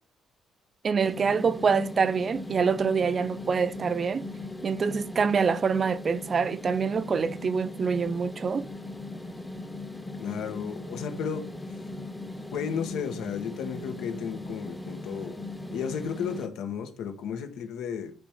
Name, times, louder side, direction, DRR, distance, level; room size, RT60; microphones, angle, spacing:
voice 1, 0.8-4.3 4.6-8.7, right 5 dB, 30° right, 0.4 m, -26 dB
sound 1, 1.0-16.5, left 2 dB, 5° left, 0.8 m, -39 dB
voice 2, 10.2-11.5 12.5-15.4 15.7-18.1, left 7 dB, 90° left, 1.4 m, -33 dB
9.4 x 3.5 x 5.0 m
cardioid pair, 170°, 0 cm